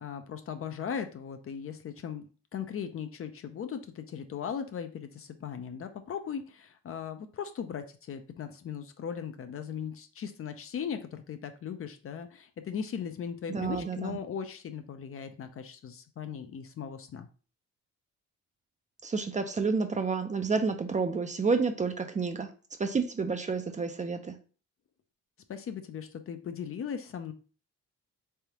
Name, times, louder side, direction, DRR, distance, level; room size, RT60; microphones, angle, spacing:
voice 1, 0.0-17.3 25.5-27.3, left 7 dB, 45° left, 8 dB, 0.6 m, -38 dB
voice 2, 13.5-14.2 19.0-22.5 22.8-24.4, right 4 dB, 25° right, 7 dB, 0.5 m, -30 dB
3.5 x 3.4 x 2.9 m, 0.37 s
cardioid pair, 90°, 30 cm